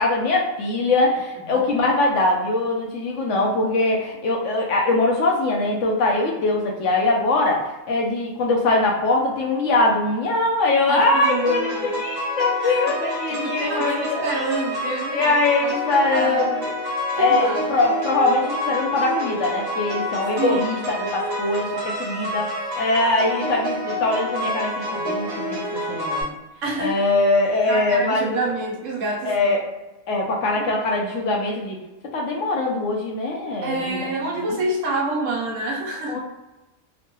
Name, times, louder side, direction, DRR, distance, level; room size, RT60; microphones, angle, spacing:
voice 1, 0.0-14.3 15.1-16.6 17.2-26.4 26.8-28.4 29.2-29.7 30.1-31.8 32.1-34.1 34.4-34.6 36.1-36.2, left 2 dB, 70° left, -1 dB, 0.8 m, -22 dB
voice 2, 10.9-11.9 12.6-12.8 13.3-15.7 16.1-16.8 17.2-17.6 20.4-20.8 23.3-23.4 26.6-27.1 27.7-29.5 30.5-30.7 33.6-36.2, right 2 dB, 65° right, -1 dB, 1.0 m, -28 dB
sound 1, 11.2-26.2, left 1 dB, 20° right, 1.0 m, -28 dB
2.9 x 2.1 x 2.9 m, 1.0 s
omnidirectional pair, 1.5 m